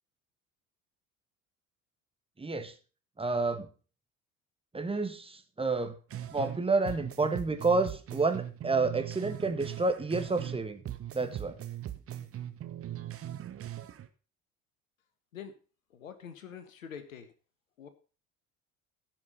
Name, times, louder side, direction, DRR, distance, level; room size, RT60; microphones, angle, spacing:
voice 1, 2.4-2.7 3.2-3.7 4.7-5.9 6.3-10.8 11.1-11.6, right 3 dB, 15° right, 8 dB, 1.6 m, -29 dB
sound 1, 6.1-6.6 6.9-10.6 10.9-14.1, right 11 dB, 35° right, 1.2 m, -40 dB
voice 2, 15.9-17.3 17.8-17.9, left 7 dB, 75° left, 11 dB, 1.4 m, -45 dB
15.5 x 6.0 x 5.4 m, 0.36 s
figure-of-eight pair, 60°, 41 cm